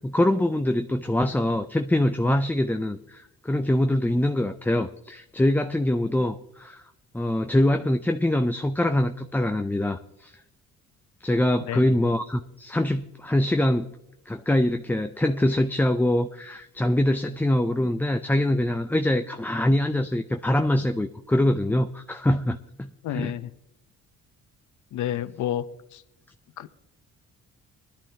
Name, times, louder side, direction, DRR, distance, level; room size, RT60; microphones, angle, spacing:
voice 1, 0.0-6.8 7.1-10.3 11.2-13.9 14.3-23.3, left 1 dB, 5° left, 6 dB, 0.5 m, -24 dB
voice 2, 23.0-23.5 24.9-25.7 25.9-26.0 26.6-26.8, left 11 dB, 75° left, 12 dB, 0.8 m, -30 dB
21.0 x 11.5 x 2.8 m, 0.87 s
cardioid pair, 90°, 30 cm